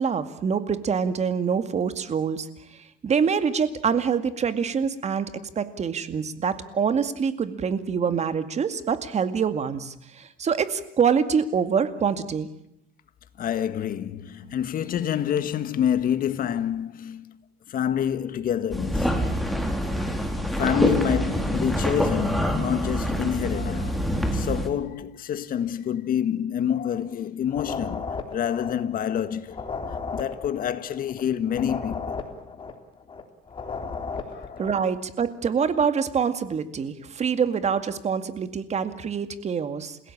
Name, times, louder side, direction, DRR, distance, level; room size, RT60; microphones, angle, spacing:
voice 1, 0.0-2.5 2.7-5.3 5.6-12.5 34.6-40.0, right 6 dB, 40° right, 2.2 m, -25 dB
voice 2, 13.4-17.4 17.7-19.4 20.6-29.7 30.1-32.2 34.3-34.6, left 9 dB, 55° left, 1.8 m, -27 dB
sound 1, 18.7-24.7, equal, ahead, 4.0 m, -26 dB
sound 2, 27.5-34.8, left 4 dB, 30° left, 3.6 m, -35 dB
29.5 x 16.5 x 8.7 m
cardioid pair, 110°, 17 cm